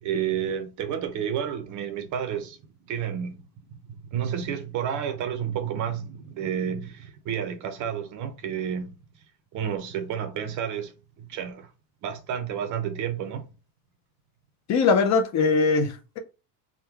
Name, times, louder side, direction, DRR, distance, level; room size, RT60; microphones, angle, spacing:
voice 1, 0.0-2.6 2.9-3.4 3.7-9.0 9.5-10.9 11.2-11.7 12.0-13.4, right 8 dB, 40° right, 0.6 m, -30 dB
voice 2, 14.7-16.2, left 4 dB, 40° left, 0.5 m, -21 dB
3.6 x 2.1 x 4.4 m
cardioid pair, 165°, 44 cm